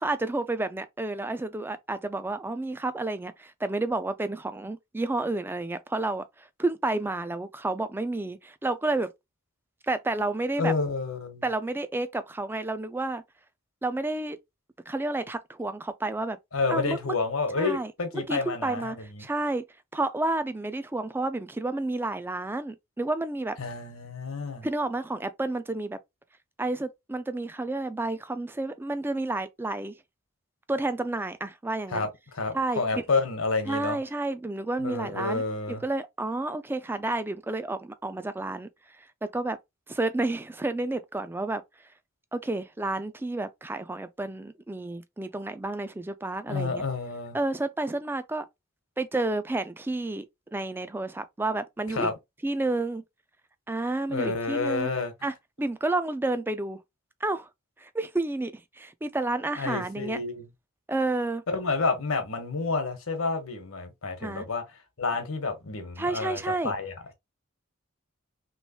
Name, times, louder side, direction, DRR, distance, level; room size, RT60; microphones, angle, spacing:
voice 1, 0.0-9.1 9.9-10.7 11.4-13.2 13.8-14.4 14.9-16.4 16.7-17.0 17.6-17.9 18.3-19.6 19.9-23.6 24.6-26.0 26.6-29.9 30.7-32.1 32.5-33.0 33.7-35.4 35.7-38.7 39.0-39.6 39.9-41.6 42.3-46.8 47.3-48.5 49.0-50.3 50.5-52.1 52.4-53.0 53.7-54.9 55.2-56.8 57.2-57.5 57.8-60.2 60.9-61.4 64.2-64.4 66.0-66.7, right 2 dB, 10° right, 0.3 m, -30 dB
voice 2, 10.6-11.4 16.5-19.3 23.6-24.7 31.9-34.0 34.8-35.8 46.5-47.4 51.9-52.1 54.1-55.1 59.6-60.5 61.5-64.6 65.0-67.1, left 3 dB, 80° left, 1.1 m, -29 dB
3.1 x 3.0 x 2.9 m
head